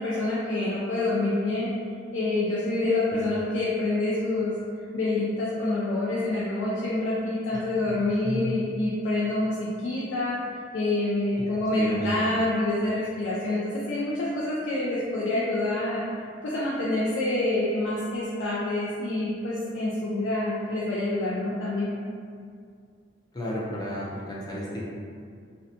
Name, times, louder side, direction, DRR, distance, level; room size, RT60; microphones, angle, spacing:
voice 1, 0.0-1.7 2.1-4.5 4.9-10.4 10.7-16.0 16.4-21.9, left 2 dB, 75° left, -7 dB, 0.4 m, -27 dB
voice 2, 11.8-12.2 23.3-24.9, left 1 dB, 20° left, -6 dB, 0.5 m, -33 dB
2.6 x 2.1 x 2.7 m, 2.2 s
head